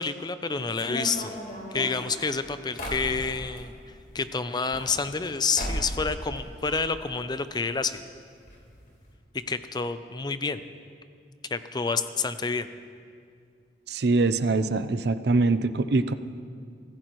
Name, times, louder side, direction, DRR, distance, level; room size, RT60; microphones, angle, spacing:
voice 1, 0.0-1.4 1.7-3.7 4.1-8.0 9.5-10.6 11.5-12.7, left 4 dB, 25° left, 11 dB, 0.5 m, -29 dB
sound 1, 0.7-3.6 4.5-5.3 5.5-6.0 6.3-7.1 7.4-7.5 7.7-7.8 8.5-8.6 8.9-9.0, equal, 55° left, 3.7 m, -35 dB
voice 2, 13.9-16.1, right 3 dB, 65° right, 12 dB, 0.6 m, -23 dB
25.0 x 15.0 x 3.1 m, 2.3 s
head